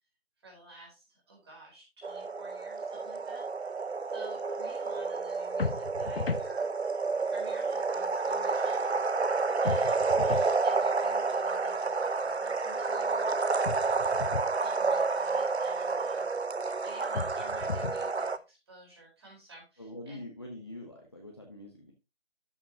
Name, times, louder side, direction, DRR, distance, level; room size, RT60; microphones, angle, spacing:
voice 1, 0.4-3.4 4.1-6.7 7.3-9.0 9.6-13.9 14.2-16.3 16.8-20.3, right 2 dB, 25° right, -2 dB, 4.2 m, -53 dB
sound 1, 2.0-18.4, right 4 dB, 70° right, 0.8 m, -30 dB
sound 2, 5.6-6.5 9.6-10.5 13.6-14.5 17.1-18.1, left 4 dB, 60° left, 0.6 m, -34 dB
voice 2, 19.8-21.9, left 1 dB, 25° left, 0 dB, 1.0 m, -44 dB
13.0 x 6.3 x 2.8 m, 0.26 s
figure-of-eight pair, 160°, 33 cm